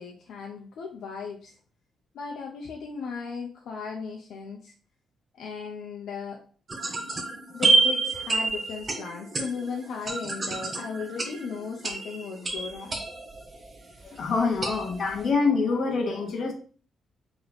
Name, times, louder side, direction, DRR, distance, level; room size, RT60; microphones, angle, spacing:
voice 1, 0.0-1.5 2.1-4.7 5.3-6.4 7.5-13.0, left 5 dB, 75° left, 0 dB, 0.6 m, -36 dB
sound 1, 6.7-13.9 14.6-15.3, right 3 dB, 30° right, 0.7 m, -28 dB
voice 2, 14.0-16.5, left 4 dB, 50° left, 2 dB, 1.0 m, -25 dB
3.1 x 3.0 x 4.0 m, 0.42 s
cardioid pair, 125°, 0 cm